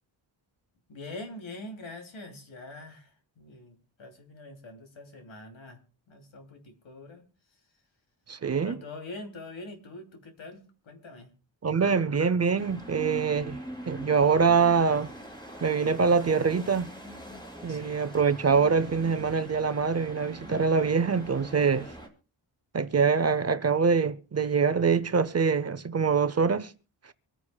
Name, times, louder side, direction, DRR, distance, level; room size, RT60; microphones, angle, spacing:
voice 1, 0.9-5.8 6.1-7.2 7.5-7.6 8.6-11.3 17.7-18.0, left 2 dB, 90° left, 2.9 m, -44 dB
voice 2, 8.3-8.8 11.6-13.6 13.9-15.1 15.6-16.9 17.6-21.9 22.7-26.7, right 5 dB, 35° right, 0.6 m, -24 dB
sound 1, 12.6-22.1, equal, 10° left, 2.3 m, -43 dB
25.0 x 9.7 x 2.3 m
wide cardioid pair, 155°, 46 cm